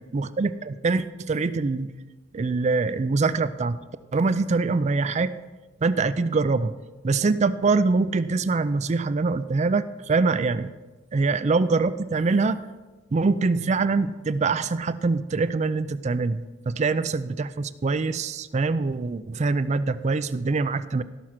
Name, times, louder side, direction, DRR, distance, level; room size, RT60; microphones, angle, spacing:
voice 1, 0.0-1.9 2.3-3.8 4.1-5.3 5.8-6.7 7.0-10.7 11.1-12.6 13.1-21.0, right 3 dB, 35° right, 13 dB, 0.4 m, -24 dB
16.5 x 6.3 x 5.8 m, 1.2 s
head